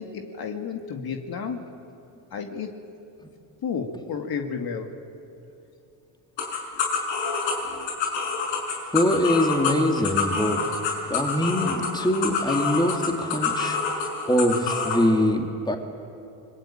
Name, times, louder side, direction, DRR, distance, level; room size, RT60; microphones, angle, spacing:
voice 1, 0.0-1.6 2.3-2.7 3.6-5.0, left 6 dB, 50° left, 3 dB, 2.5 m, -31 dB
sound 1, 6.4-15.0, left 5 dB, 75° left, 6.3 m, -27 dB
voice 2, 8.9-10.6 11.1-13.8 14.3-15.8, left 1 dB, 10° left, 3 dB, 3.2 m, -23 dB
29.0 x 21.5 x 9.0 m, 2.8 s
supercardioid pair, 80°, 45 cm